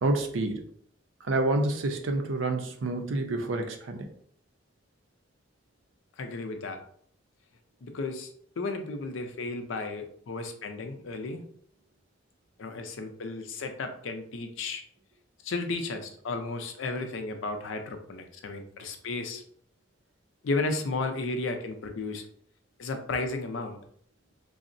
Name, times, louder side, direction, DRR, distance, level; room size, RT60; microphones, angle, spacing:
voice 1, 0.0-0.6 1.3-4.1, right 2 dB, 90° right, 5 dB, 0.5 m, -28 dB
voice 2, 6.2-6.8 7.8-8.3 8.6-11.4 12.6-14.8 15.4-19.4 20.4-22.2 22.8-23.8, left 3 dB, 85° left, 6 dB, 0.5 m, -33 dB
3.6 x 2.0 x 2.5 m, 0.63 s
head